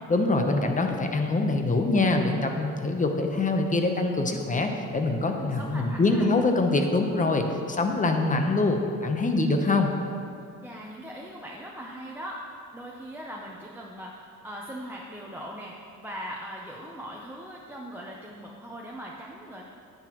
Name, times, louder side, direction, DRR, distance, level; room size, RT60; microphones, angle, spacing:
voice 1, 0.1-9.9, left 2 dB, 25° left, 4 dB, 0.9 m, -24 dB
voice 2, 5.3-6.2 10.6-19.6, equal, 5° right, -3 dB, 0.8 m, -40 dB
9.9 x 8.0 x 3.1 m, 2.4 s
cardioid pair, 90°, 30 cm